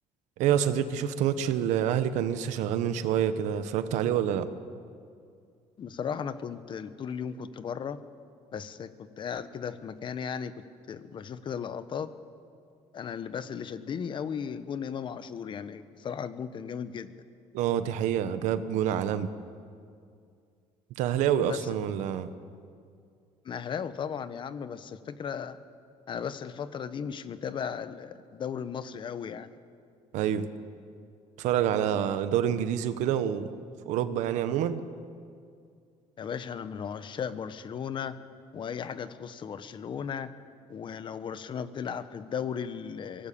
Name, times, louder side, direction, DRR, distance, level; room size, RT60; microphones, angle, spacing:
voice 1, 0.4-4.5 17.5-19.3 21.0-22.3 30.1-30.5 31.4-33.5 33.9-34.8, right 9 dB, 85° right, 11 dB, 1.2 m, -27 dB
voice 2, 5.8-8.0 8.5-12.1 12.9-17.1 21.5-21.7 23.4-25.6 26.1-29.6 36.2-38.2 38.5-40.3 40.7-43.3, left 7 dB, 40° left, 13 dB, 1.1 m, -36 dB
23.0 x 18.5 x 8.6 m, 2.3 s
cardioid pair, 125°, 12 cm